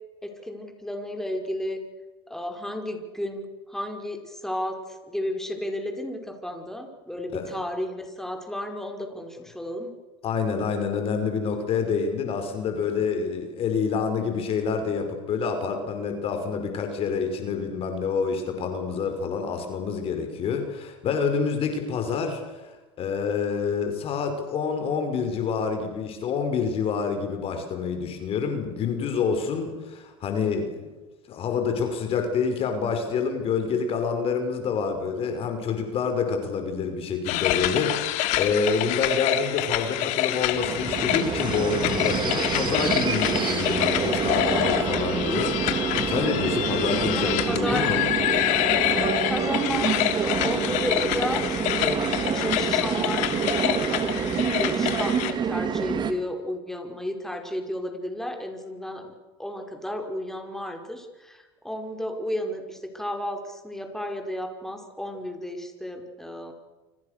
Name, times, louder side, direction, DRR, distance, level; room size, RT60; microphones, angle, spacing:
voice 1, 0.2-1.8 2.3-9.9 47.2-47.9 49.3-53.3 53.6-59.1 59.4-66.5, left 1 dB, 5° left, 4 dB, 5.4 m, -33 dB
voice 2, 10.2-30.9 31.3-48.1, left 5 dB, 40° left, 6 dB, 5.4 m, -27 dB
sound 1, 37.2-55.3, left 14 dB, 60° left, 3.0 m, -27 dB
sound 2, 40.5-56.1, right 6 dB, 30° right, 3.1 m, -27 dB
29.5 x 26.0 x 6.8 m, 1.2 s
supercardioid pair, 100°, 14 cm